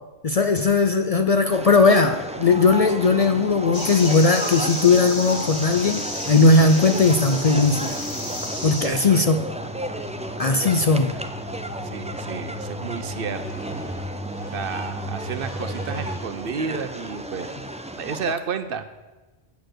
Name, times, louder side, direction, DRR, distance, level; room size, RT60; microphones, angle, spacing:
voice 1, 0.2-8.0 8.6-9.4 10.4-11.1, left 3 dB, 45° left, 8 dB, 0.5 m, -18 dB
sound 1, 1.5-18.3, right 1 dB, 10° right, 0.4 m, -33 dB
sound 2, 3.7-8.9, left 1 dB, 25° left, 1.5 m, -32 dB
sound 3, 5.1-16.2, equal, 10° left, 4.2 m, -37 dB
voice 2, 8.8-9.3 10.6-11.0 11.8-13.4 14.5-17.5 18.0-18.9, right 6 dB, 65° right, 10 dB, 0.8 m, -31 dB
8.3 x 6.7 x 7.8 m, 1.2 s
omnidirectional pair, 1.1 m